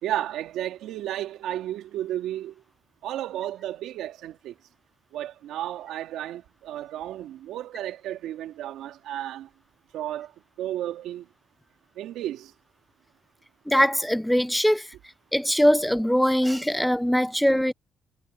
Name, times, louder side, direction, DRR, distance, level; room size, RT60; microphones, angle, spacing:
voice 1, 0.0-2.6 3.0-4.5 5.1-9.5 9.9-10.3 10.6-11.3 11.9-12.5, right 12 dB, 85° right, 3.1 m, -33 dB
voice 2, 13.7-14.9 15.3-17.7, equal, ahead, 0.9 m, -22 dB
cardioid pair, 90°, 0 cm